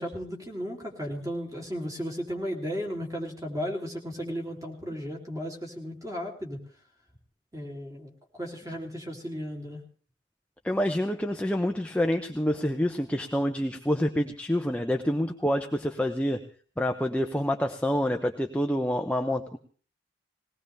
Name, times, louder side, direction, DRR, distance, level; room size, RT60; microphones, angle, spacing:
voice 1, 0.0-6.6 7.5-8.1 8.4-9.8, equal, 15° right, 0 dB, 3.1 m, -35 dB
voice 2, 10.6-16.4 16.8-19.6, equal, 5° left, 4 dB, 0.7 m, -27 dB
21.0 x 18.5 x 3.4 m, 0.42 s
head